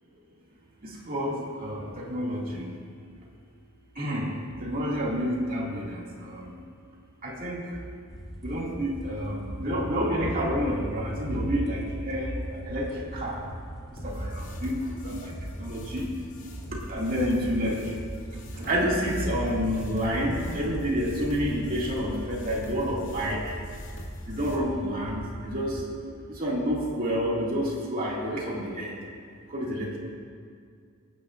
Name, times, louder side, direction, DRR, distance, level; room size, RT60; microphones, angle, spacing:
voice 1, 0.8-2.7 4.0-4.3 4.6-6.6 7.2-7.7 8.4-13.4 14.0-15.3 15.6-16.1 16.9-17.8 18.5-23.4 24.3-25.8 26.3-28.9 29.5-30.0, equal, 45° right, -4 dB, 2.4 m, -29 dB
sound 1, 8.1-25.8, equal, ahead, 1.7 m, -41 dB
sound 2, 14.0-24.6, equal, 65° left, 2.3 m, -43 dB
26.5 x 9.4 x 2.6 m, 2.1 s
head